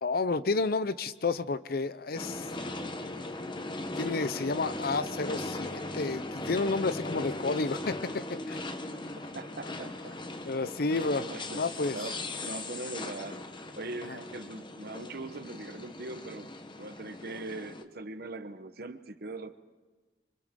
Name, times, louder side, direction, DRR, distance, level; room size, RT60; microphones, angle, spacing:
voice 1, 0.0-2.5 4.0-8.6 10.4-11.3 11.5-12.0, left 3 dB, 60° left, 15 dB, 0.7 m, -31 dB
sound 1, 2.1-17.8, left 2 dB, 25° left, 1.1 m, -39 dB
voice 2, 9.3-10.2 11.2-11.6 11.9-16.5 16.8-19.5, right 2 dB, 60° right, 10 dB, 1.1 m, -41 dB
27.5 x 25.5 x 3.8 m, 1.3 s
head